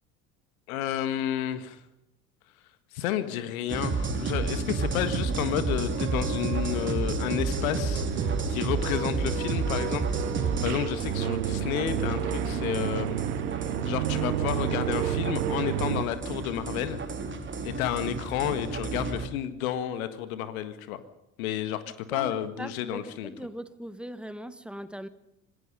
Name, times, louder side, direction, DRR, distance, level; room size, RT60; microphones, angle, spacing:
voice 1, 0.7-1.8 2.9-10.1 10.4-13.2 13.9-17.0 17.6-21.0 21.4-21.8 22.1-23.3, left 11 dB, 65° left, 11 dB, 1.8 m, -31 dB
sound 1, 3.7-19.3, right 4 dB, 25° right, 3.4 m, -31 dB
sound 2, 5.9-16.0, right 13 dB, 75° right, 0.9 m, -32 dB
voice 2, 22.1-25.1, equal, ahead, 12 dB, 1.6 m, -40 dB
26.5 x 20.0 x 5.5 m, 0.85 s
figure-of-eight pair, 65°, 45 cm